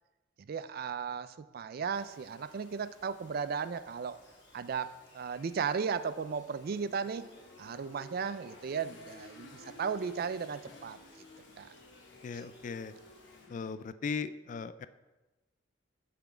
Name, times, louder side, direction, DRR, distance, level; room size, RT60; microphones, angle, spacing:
voice 1, 0.5-4.2 4.5-7.3 7.6-11.0 11.6-11.7, right 6 dB, 55° right, 14 dB, 0.4 m, -35 dB
Bird vocalization bird call bird song, 1.9-13.5, left 2 dB, 90° left, 2.6 m, -61 dB
sound 1, 6.6-13.7, left 2 dB, 70° left, 1.1 m, -54 dB
voice 2, 12.2-12.9 13.5-14.9, left 5 dB, 40° left, 13 dB, 0.3 m, -38 dB
7.0 x 5.9 x 4.9 m, 1.1 s
head